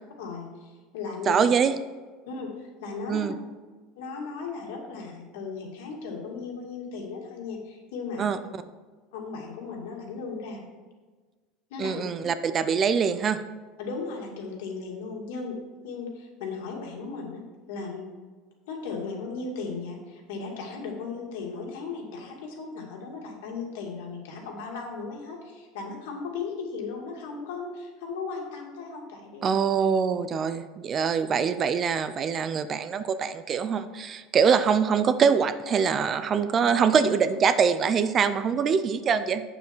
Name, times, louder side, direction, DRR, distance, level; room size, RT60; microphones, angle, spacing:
voice 1, 0.2-1.5 2.3-3.3 4.0-8.3 9.1-10.6 11.7-12.0 13.8-15.6 15.8-17.4 17.7-18.1 18.7-29.4, left 4 dB, 85° left, 0 dB, 2.4 m, -36 dB
voice 2, 1.3-1.7 3.1-3.3 8.2-8.4 11.8-13.4 29.4-39.4, right 6 dB, 25° right, 12 dB, 0.4 m, -24 dB
8.2 x 7.2 x 4.5 m, 1.4 s
cardioid pair, 165°, 0 cm